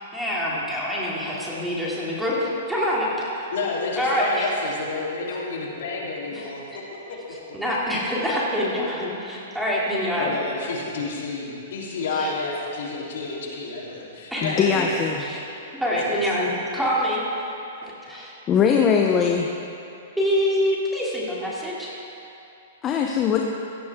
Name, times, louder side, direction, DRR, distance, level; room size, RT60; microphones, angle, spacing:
voice 1, 0.1-3.3 4.0-4.5 6.3-6.4 7.5-10.3 12.1-12.3 14.3-14.7 15.2-15.4 15.8-17.2 18.1-18.3 20.2-21.9, equal, ahead, -7 dB, 2.9 m, -25 dB
voice 2, 3.5-7.2 10.0-15.0 15.8-16.2 16.4-16.5, left 3 dB, 70° left, -5 dB, 3.6 m, -30 dB
voice 3, 14.4-15.2 18.5-19.5 22.8-23.5, left 6 dB, 25° left, 1 dB, 0.8 m, -21 dB
17.0 x 13.5 x 3.7 m, 2.8 s
hypercardioid pair, 145°, 0 cm